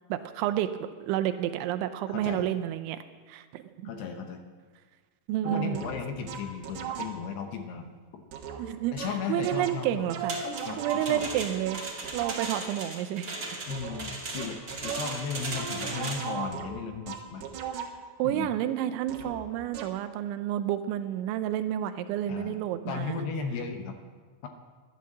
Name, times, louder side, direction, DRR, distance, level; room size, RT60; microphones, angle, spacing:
voice 1, 0.1-0.7 1.0-3.0 3.3-3.9 5.3-5.8 8.6-10.5 10.8-11.8 12.1-13.3 18.2-23.2, right 12 dB, 80° right, 10 dB, 3.0 m, -30 dB
voice 2, 2.1-2.5 3.8-4.4 5.4-7.9 8.1-8.2 8.9-10.0 10.7-11.2 13.7-17.5 18.2-18.5 22.3-22.6 22.9-24.0 24.4-24.5, left 6 dB, 75° left, 5 dB, 2.7 m, -35 dB
sound 1, 5.4-7.4 8.3-12.8 13.7-18.2 19.1-19.4 19.7-20.0, right 7 dB, 65° right, 3.1 m, -38 dB
sound 2, 10.3-16.4, right 2 dB, 35° right, 1.6 m, -37 dB
12.5 x 11.0 x 7.4 m, 1.4 s
omnidirectional pair, 5.5 m